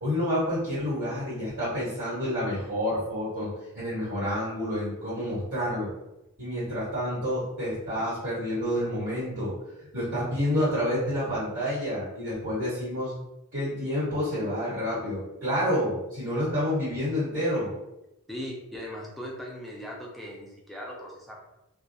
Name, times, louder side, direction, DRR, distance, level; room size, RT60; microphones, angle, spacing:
voice 1, 0.0-3.5 3.7-5.9 6.4-9.5 9.9-13.1 13.5-17.7, equal, 55° right, -12 dB, 1.5 m, -29 dB
voice 2, 18.3-21.4, equal, ahead, -3 dB, 0.4 m, -39 dB
2.7 x 2.3 x 2.2 m, 0.91 s
head